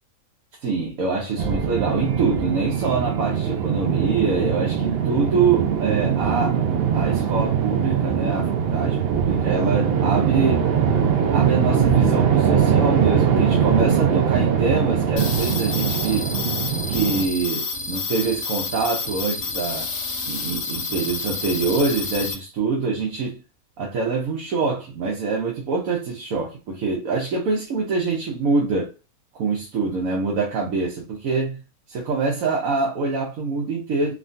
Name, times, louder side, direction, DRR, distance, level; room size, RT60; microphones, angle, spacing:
voice 1, 0.6-6.5 6.9-10.7 11.3-16.3 16.9-19.9 20.3-23.4 23.8-28.9 29.3-31.6 31.9-34.1, right 4 dB, 75° right, 1.2 m, -25 dB
sound 1, 1.4-17.3, right 7 dB, 60° right, 0.6 m, -21 dB
sound 2, 15.2-22.3, left 4 dB, 70° left, 1.2 m, -29 dB
3.7 x 2.2 x 2.5 m
omnidirectional pair, 1.5 m